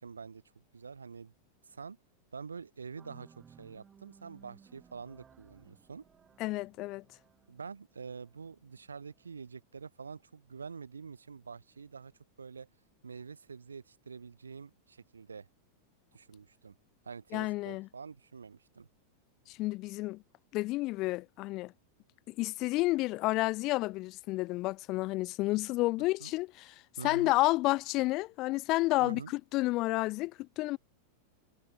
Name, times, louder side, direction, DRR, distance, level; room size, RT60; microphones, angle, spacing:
voice 1, 0.0-1.3 1.7-2.0 2.3-6.1 7.5-12.1 12.4-12.7 13.0-15.5 16.1-16.8 17.0-18.9 26.2-26.3 27.0-27.3 29.0-29.3, right 5 dB, 75° right, 5.3 m, -46 dB
sound 1, 3.0-9.2, right 7 dB, 20° right, 2.9 m, -60 dB
voice 2, 6.4-7.0 17.3-17.9 19.5-20.2 20.5-21.7 22.3-26.7 27.0-30.8, left 20 dB, 40° left, 0.4 m, -30 dB
figure-of-eight pair, 90°, 0 cm